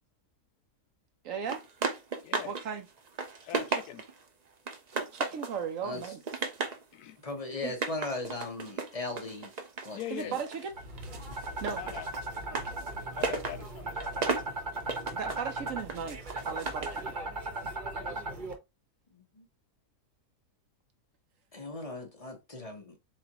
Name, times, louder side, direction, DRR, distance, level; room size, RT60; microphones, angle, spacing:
voice 1, 1.2-1.6 2.4-2.9 5.1-6.2 7.6-7.7 10.1-10.7 11.6-11.8 12.1-12.2 15.1-17.2, right 7 dB, 65° right, 0.9 m, -36 dB
sound 1, 1.5-2.6 3.0-4.2 4.7-5.6 6.0-6.8 7.7-10.7 11.0-17.0, right 4 dB, 80° right, 0.3 m, -35 dB
voice 2, 3.4-4.0 6.9-7.2 9.9-10.3 11.8-12.1 13.1-14.3 17.9-18.2, left 12 dB, 75° left, 1.1 m, -42 dB
voice 3, 5.8-6.1 7.2-9.5 9.8-10.4 19.1-19.5 21.5-22.9, left 2 dB, 30° left, 0.7 m, -38 dB
sound 2, 10.7-18.5, right 2 dB, 35° right, 0.9 m, -38 dB
7.3 x 2.5 x 2.9 m
omnidirectional pair, 1.7 m